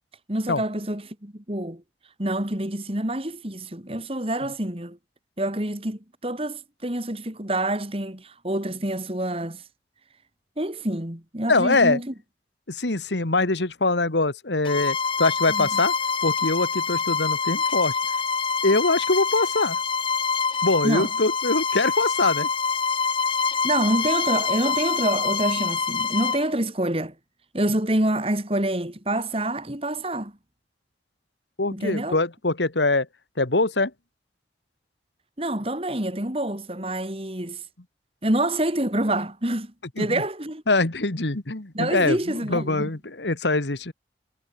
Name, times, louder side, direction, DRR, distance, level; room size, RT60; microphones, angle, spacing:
voice 1, 0.3-1.8 2.2-5.0 5.4-9.6 10.6-12.1 15.5-15.8 20.8-21.1 23.6-27.1 27.5-30.3 31.7-32.2 35.4-37.6 38.2-40.6 41.7-42.9, right 1 dB, 35° right, 3.0 m, -27 dB
voice 2, 11.5-12.0 12.7-15.9 16.2-17.9 18.6-19.8 20.6-22.5 31.6-33.1 33.4-33.9 40.0-40.2 40.7-43.9, left 2 dB, 85° left, 2.0 m, -23 dB
Bowed string instrument, 14.6-26.5, left 5 dB, 30° left, 0.8 m, -25 dB
head